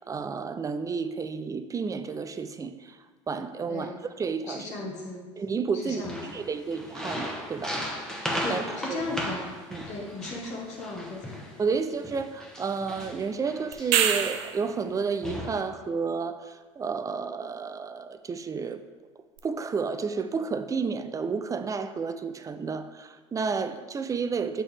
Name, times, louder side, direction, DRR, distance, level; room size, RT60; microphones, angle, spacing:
voice 1, 0.1-2.7 3.3-3.9 4.2-4.6 5.4-7.8 8.5-8.6 8.9-9.0 9.7-9.8 11.6-16.4 16.8-18.8 19.4-24.6, right 5 dB, 20° right, 10 dB, 0.4 m, -31 dB
voice 2, 3.7-4.0 4.5-5.2 5.7-6.2 8.4-9.5 9.9-11.4, left 2 dB, 45° left, -2 dB, 1.3 m, -36 dB
sound 1, 5.9-11.5 12.0-14.2 14.8-14.9 15.2-15.6, equal, 5° left, 1.1 m, -36 dB
sound 2, 13.7-14.7 19.4-19.5, right 9 dB, 65° right, 0.5 m, -25 dB
7.0 x 4.4 x 3.5 m, 1.4 s
hypercardioid pair, 80°, 16 cm